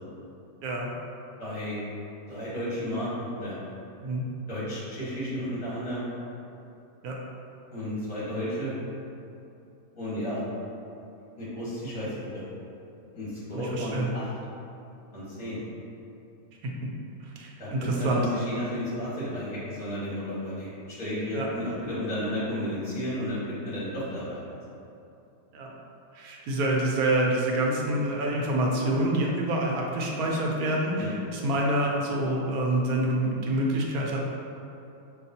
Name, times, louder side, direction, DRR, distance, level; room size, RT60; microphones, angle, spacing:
voice 1, 1.4-1.8 2.3-3.6 4.5-6.1 7.7-8.8 9.9-10.4 11.4-12.4 13.1-14.3 15.1-15.6 17.6-24.7 31.0-31.1, equal, 65° left, -11 dB, 2.1 m, -33 dB
voice 2, 13.5-14.1 16.6-16.7 17.2-18.3 21.3-21.5 25.5-25.7 26.1-34.2, right 1 dB, 75° right, -2 dB, 1.1 m, -27 dB
6.3 x 2.3 x 2.7 m, 2.8 s
omnidirectional pair, 1.6 m